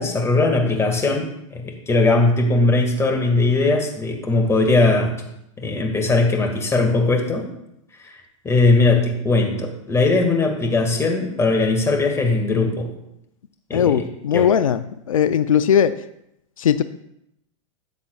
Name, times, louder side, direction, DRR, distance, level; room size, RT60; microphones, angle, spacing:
voice 1, 0.0-5.2 5.6-7.4 8.1-8.2 8.4-12.9 13.7-14.0 14.3-14.5, left 3 dB, 15° left, 3 dB, 1.8 m, -19 dB
voice 2, 13.7-16.0 16.6-16.8, left 9 dB, 90° left, 13 dB, 0.4 m, -18 dB
13.0 x 8.3 x 2.3 m, 0.81 s
hypercardioid pair, 105°, 17 cm